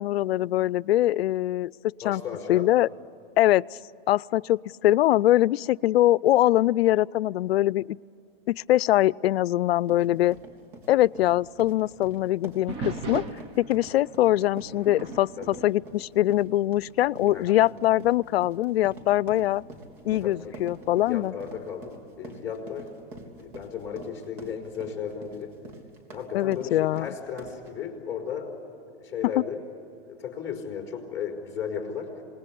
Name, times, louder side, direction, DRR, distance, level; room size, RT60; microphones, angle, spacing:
voice 1, 0.0-1.7 2.0-2.2 2.5-2.9 3.4-3.6 4.1-8.0 8.5-10.4 10.9-13.2 13.6-19.6 20.0-21.3 26.3-27.1 29.4-29.5, left 14 dB, 85° left, 22 dB, 0.5 m, -23 dB
voice 2, 2.0-2.7 15.4-15.5 17.3-17.6 20.2-20.6 21.0-22.9 23.4-25.5 26.1-28.6 28.8-29.6 30.1-32.1, left 7 dB, 10° left, 1 dB, 4.1 m, -35 dB
sound 1, 9.7-27.7, right 2 dB, 60° right, 3.8 m, -46 dB
sound 2, 12.7-16.8 17.1-17.5 18.1-18.2 19.0-21.7 23.5-24.0, right 3 dB, 20° right, 0.7 m, -40 dB
28.0 x 19.5 x 8.5 m, 2.8 s
supercardioid pair, 165°, 30 cm